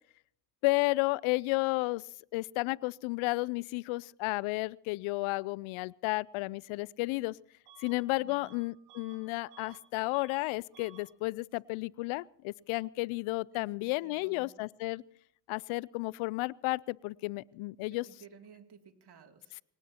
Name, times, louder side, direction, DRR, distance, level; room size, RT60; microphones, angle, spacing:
voice 1, 0.6-2.0 2.3-7.4 7.8-15.0 15.5-18.1, left 22 dB, 80° left, 25 dB, 0.6 m, -32 dB
Bus / Alarm, 7.7-8.0 8.3-9.8 10.1-10.4 10.7-11.1, right 11 dB, 85° right, 2.7 m, -56 dB
voice 2, 13.5-14.6 17.9-19.6, right 6 dB, 50° right, 5 dB, 2.8 m, -56 dB
24.5 x 19.0 x 2.9 m, 0.66 s
hypercardioid pair, 50°, 49 cm